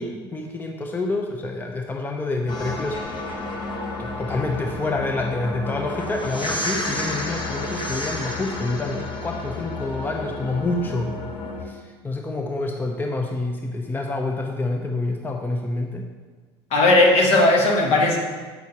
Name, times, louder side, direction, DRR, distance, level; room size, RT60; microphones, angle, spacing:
voice 1, 0.0-3.4 4.0-11.1 11.6-16.1, left 2 dB, 15° left, 2 dB, 0.7 m, -28 dB
sound 1, 2.5-11.6, left 2 dB, 40° left, 1.2 m, -31 dB
voice 2, 16.7-18.2, left 2 dB, 55° left, 0 dB, 1.5 m, -16 dB
8.2 x 6.1 x 2.9 m, 1.4 s
supercardioid pair, 85°, 12 cm